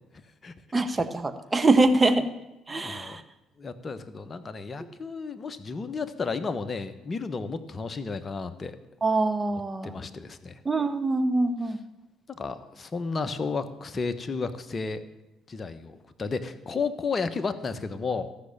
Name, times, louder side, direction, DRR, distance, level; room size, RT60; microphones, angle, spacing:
voice 1, 0.7-2.3 2.7-3.2 9.0-9.9 10.6-11.8, right 2 dB, 25° right, 8 dB, 1.4 m, -24 dB
voice 2, 2.8-3.2 3.6-8.8 9.8-10.6 12.3-15.0 15.5-18.3, left 4 dB, 35° left, 10 dB, 1.2 m, -32 dB
14.0 x 6.4 x 8.6 m, 0.97 s
hypercardioid pair, 55°, 0 cm